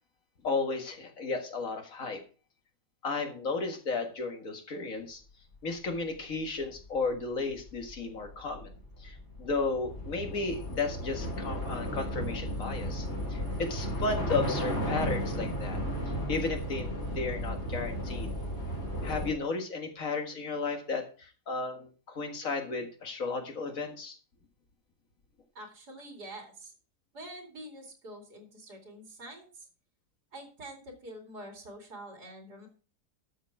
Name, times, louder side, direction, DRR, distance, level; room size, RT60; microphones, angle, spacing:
voice 1, 0.4-2.2 3.0-5.2 5.6-8.7 9.0-15.8 16.3-18.3 19.0-24.2, left 3 dB, 55° left, 5 dB, 2.2 m, -34 dB
Train / Subway metro underground, 6.3-19.3, equal, 40° left, 3.7 m, -34 dB
voice 2, 25.5-26.7 27.1-29.7 30.3-32.7, right 1 dB, 85° right, 2 dB, 3.2 m, -46 dB
12.5 x 6.7 x 4.8 m, 0.38 s
omnidirectional pair, 1.7 m